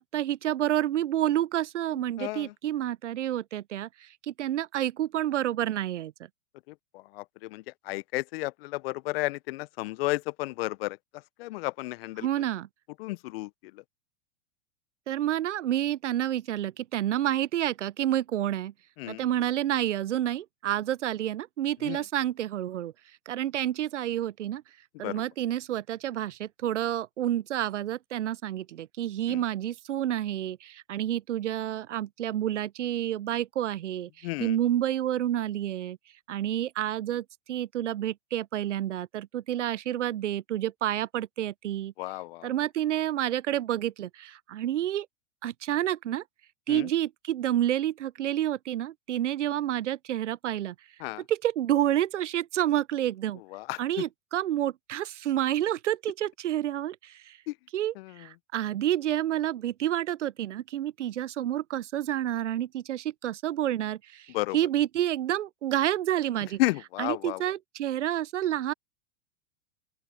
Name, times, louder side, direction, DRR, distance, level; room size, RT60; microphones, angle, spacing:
voice 1, 0.0-6.1 12.2-12.7 15.1-18.7 19.1-22.9 23.3-24.6 25.0-36.0 36.3-41.9 42.4-45.1 45.4-46.2 46.7-50.7 51.3-53.4 53.8-57.4 57.7-66.6 67.0-68.7, right 12 dB, 80° right, 0.8 m, -29 dB
voice 2, 2.2-2.5 6.9-11.0 11.4-12.3 13.0-13.5 19.0-19.2 21.8-22.0 25.0-25.2 29.3-29.4 34.2-34.6 42.0-42.5 46.7-46.9 51.0-51.2 53.5-53.8 57.5-57.6 58.0-58.1 64.3-64.6 66.6-67.4, left 20 dB, 55° left, 1.0 m, -32 dB
open air
hypercardioid pair, 105°, 36 cm